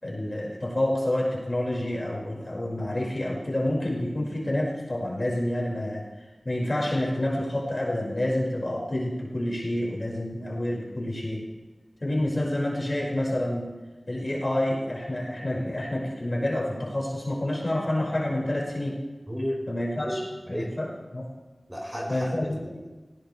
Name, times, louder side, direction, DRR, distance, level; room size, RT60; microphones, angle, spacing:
voice 1, 0.0-6.0 6.5-11.4 12.0-13.7 14.1-19.0 19.7-20.2 20.5-21.3 22.1-22.6, left 1 dB, 40° left, -3 dB, 5.5 m, -28 dB
voice 2, 19.3-19.6 20.0-20.2 20.5-20.7 21.7-22.9, equal, 10° right, -2 dB, 5.3 m, -33 dB
19.5 x 18.0 x 3.4 m, 1.2 s
wide cardioid pair, 50°, 0 cm